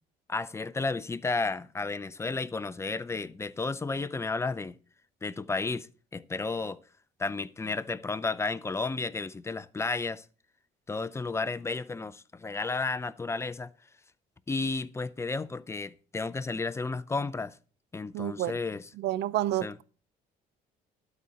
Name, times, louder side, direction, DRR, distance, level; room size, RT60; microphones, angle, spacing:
voice 1, 0.3-4.8 5.2-6.8 7.2-10.2 10.9-13.7 14.5-17.6 17.9-18.8 19.6-19.7, left 3 dB, 15° left, 0.5 m, -32 dB
voice 2, 18.1-18.6 19.0-19.8, right 13 dB, 75° right, 0.5 m, -29 dB
12.0 x 4.2 x 6.3 m
cardioid pair, 110°, 17 cm